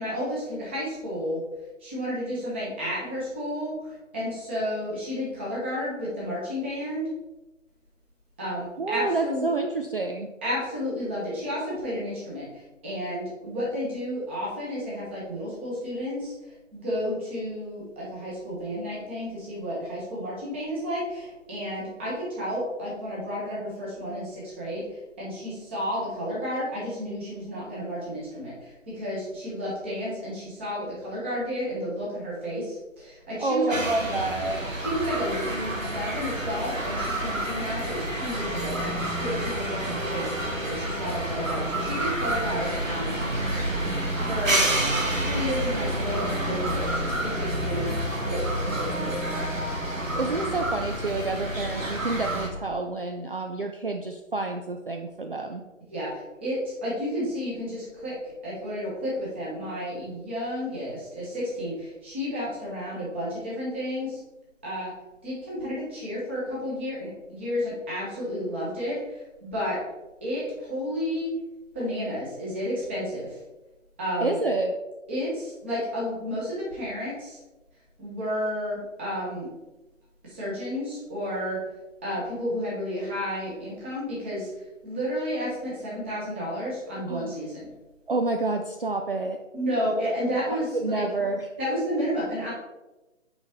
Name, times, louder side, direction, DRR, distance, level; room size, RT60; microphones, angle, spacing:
voice 1, 0.0-1.4 1.8-7.1 8.4-9.5 10.4-33.8 34.8-43.2 44.3-44.7 45.2-47.9 48.3-49.5 55.9-64.2 64.6-64.9 65.2-69.8 70.2-71.3 71.7-73.4 74.0-74.4 75.1-77.4 78.0-79.5 80.2-81.6 82.0-87.7 89.5-91.0 91.6-92.5, equal, 10° right, -7 dB, 1.0 m, -31 dB
voice 2, 8.8-10.3 33.4-34.6 50.1-55.6 74.2-74.7 87.1-87.3 88.1-89.4 90.5-91.5, right 3 dB, 45° right, 4 dB, 0.4 m, -28 dB
sound 1, 33.7-52.5, right 1 dB, 85° right, 1.6 m, -29 dB
6.1 x 4.9 x 4.2 m, 1.1 s
figure-of-eight pair, 155°, 39 cm